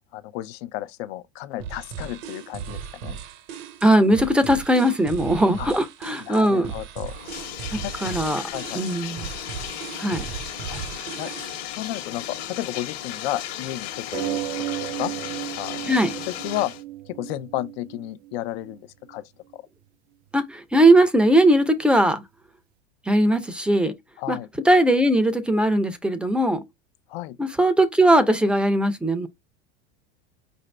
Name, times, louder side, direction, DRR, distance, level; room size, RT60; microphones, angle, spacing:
voice 1, 0.1-3.2 5.6-5.7 6.3-7.1 7.8-7.9 8.5-8.8 10.7-10.8 11.2-11.3 11.7-14.4 15.0-15.1 15.6-16.7 17.1-19.2 19.5-19.6 24.2-24.5 27.1-27.4, left 14 dB, 70° left, 0.6 m, -32 dB
sound 1, 1.6-11.7, right 8 dB, 60° right, 0.8 m, -37 dB
voice 2, 3.8-6.7 8.0-8.5 8.7-9.2 10.0-10.3 15.9-16.1 20.3-22.2 23.1-23.9 24.3-24.4 24.6-26.6 27.4-29.3, right 1 dB, 5° right, 0.5 m, -19 dB
Bathtub (filling or washing), 7.1-16.8, left 11 dB, 55° left, 1.2 m, -35 dB
sound 2, 14.1-19.1 19.9-20.0 20.3-20.4, right 16 dB, 80° right, 0.5 m, -34 dB
5.0 x 2.6 x 3.2 m
supercardioid pair, 130°, 32 cm